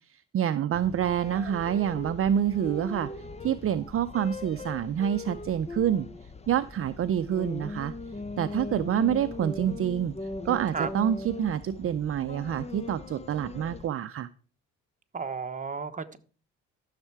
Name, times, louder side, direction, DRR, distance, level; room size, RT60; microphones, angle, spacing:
voice 1, 0.1-3.1 3.4-6.1 6.5-7.9 8.4-10.1 10.4-14.3, right 9 dB, 45° right, 11 dB, 0.6 m, -27 dB
sound 1, 0.7-13.9, left 3 dB, 20° left, 0.7 m, -40 dB
voice 2, 10.4-10.9 15.1-16.2, right 5 dB, 25° right, 7 dB, 1.2 m, -34 dB
13.5 x 6.6 x 4.7 m, 0.39 s
cardioid pair, 90°, 30 cm